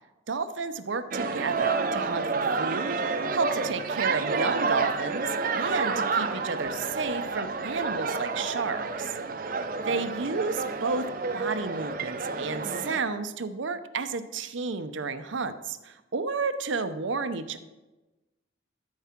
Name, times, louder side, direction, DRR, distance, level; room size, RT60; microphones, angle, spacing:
voice 1, 0.3-3.0 3.3-9.1 9.9-11.0 11.3-17.7, right 4 dB, 80° right, 11 dB, 0.7 m, -31 dB
sound 1, 1.1-13.0, right 4 dB, 45° right, 0.6 m, -29 dB
13.0 x 4.8 x 5.9 m, 1.1 s
head